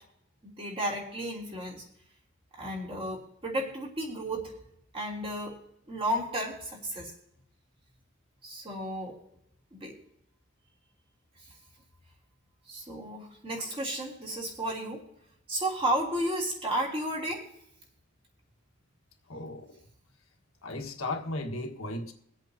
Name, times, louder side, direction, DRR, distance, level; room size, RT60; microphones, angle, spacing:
voice 1, 0.4-1.8 2.6-4.5 4.9-5.5 5.9-7.1 8.4-9.2 9.7-9.9 11.4-11.5 12.7-15.0 15.5-17.4, right 1 dB, 25° right, 3.3 m, -33 dB
voice 2, 19.3-19.7 20.6-22.1, left 2 dB, 85° left, 1.6 m, -35 dB
23.5 x 8.2 x 2.9 m
head